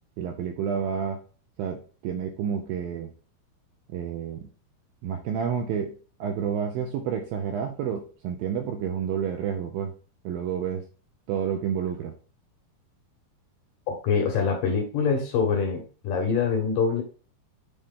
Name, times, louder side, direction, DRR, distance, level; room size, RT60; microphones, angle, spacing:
voice 1, 0.2-1.2 1.6-3.1 3.9-4.4 5.0-9.9 10.2-10.9 11.3-12.1, right 8 dB, 80° right, 4 dB, 2.1 m, -30 dB
voice 2, 13.9-17.0, left 5 dB, 70° left, 3 dB, 2.2 m, -25 dB
9.0 x 4.2 x 3.7 m, 0.38 s
omnidirectional pair, 4.8 m